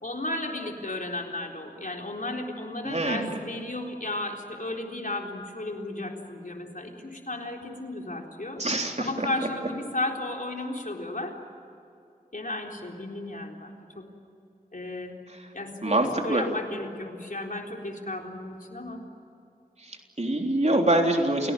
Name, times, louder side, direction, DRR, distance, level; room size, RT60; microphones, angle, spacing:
voice 1, 0.0-8.6 9.0-11.4 12.3-14.1 14.7-15.2 15.5-19.0, left 2 dB, 60° left, 1 dB, 3.9 m, -34 dB
voice 2, 2.8-3.4 8.6-9.3 15.8-16.4 19.8-21.5, right 1 dB, 45° right, 2 dB, 3.6 m, -25 dB
29.5 x 18.0 x 9.2 m, 2.7 s
wide cardioid pair, 50°, 16 cm